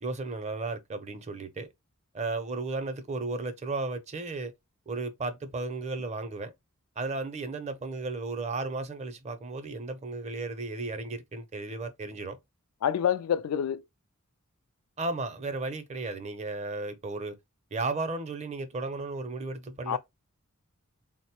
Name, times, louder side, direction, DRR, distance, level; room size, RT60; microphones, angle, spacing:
voice 1, 0.0-1.7 2.1-4.5 4.9-6.5 7.0-12.4 15.0-17.4 17.7-20.0, right 3 dB, 30° right, 0.5 m, -34 dB
voice 2, 12.8-13.8 19.9-20.0, left 9 dB, 80° left, 0.3 m, -27 dB
3.8 x 2.0 x 2.8 m
head